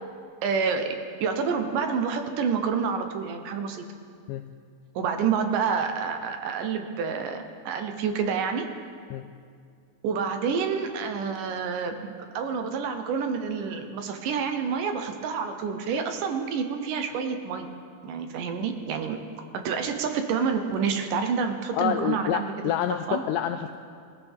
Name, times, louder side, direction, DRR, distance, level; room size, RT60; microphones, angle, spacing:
voice 1, 0.4-3.8 5.0-8.7 10.0-17.7 18.0-19.2 19.5-22.5 22.9-23.2, right 6 dB, 75° right, 6 dB, 2.3 m, -28 dB
voice 2, 21.7-23.8, left 10 dB, 85° left, 7 dB, 1.9 m, -28 dB
21.5 x 15.0 x 3.5 m, 2.3 s
omnidirectional pair, 4.2 m